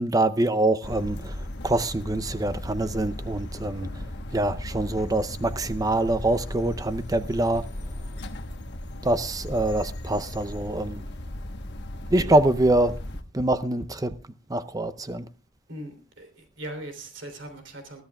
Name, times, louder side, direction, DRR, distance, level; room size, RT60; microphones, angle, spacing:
voice 1, 0.0-4.0 4.3-7.6 9.0-11.0 12.1-13.0 13.3-14.2 14.5-15.3, right 1 dB, 20° right, 0.6 m, -25 dB
sound 1, 0.8-13.2, left 1 dB, 55° left, 1.2 m, -36 dB
voice 2, 15.7-18.0, right 1 dB, 60° right, 3.2 m, -39 dB
22.0 x 13.5 x 2.3 m
head